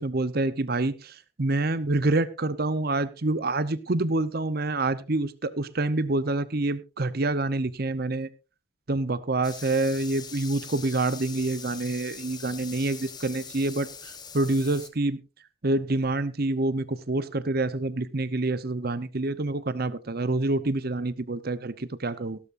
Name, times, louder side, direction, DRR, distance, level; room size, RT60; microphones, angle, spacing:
voice 1, 0.0-8.3 8.9-15.2 15.6-22.4, right 2 dB, 45° right, 15 dB, 0.8 m, -27 dB
sound 1, 9.4-14.9, left 6 dB, 20° left, 1.1 m, -42 dB
17.5 x 12.5 x 2.6 m, 0.31 s
head